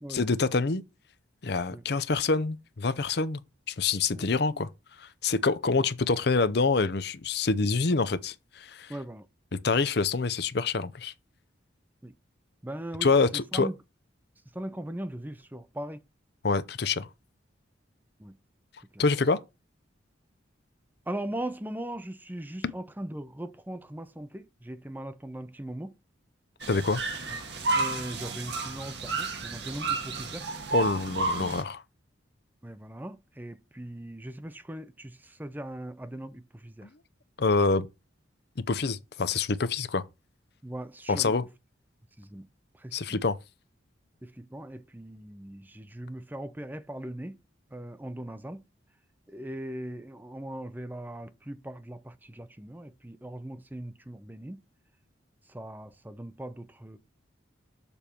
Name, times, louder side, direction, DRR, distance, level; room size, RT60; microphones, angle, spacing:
voice 1, 0.1-0.8 1.4-3.4 3.7-4.7 5.2-8.9 9.5-11.1 13.0-13.7 16.4-17.1 19.0-19.4 26.7-27.0 30.7-31.8 37.4-37.9 38.7-40.0 41.1-41.4 42.9-43.4, left 4 dB, 55° left, 0.6 m, -26 dB
voice 2, 4.1-4.6 8.9-9.3 12.0-12.1 12.6-13.7 14.5-16.0 18.2-18.3 18.9-19.0 21.1-25.9 27.3-27.4 27.8-30.4 32.6-36.9 40.6-41.3 42.2-42.5 42.8-43.2 44.2-47.4 47.7-48.6 49.3-54.6 55.5-57.0, right 1 dB, 10° right, 0.5 m, -39 dB
sound 1, 26.6-31.6, right 3 dB, 60° right, 1.6 m, -31 dB
6.9 x 4.5 x 6.8 m
head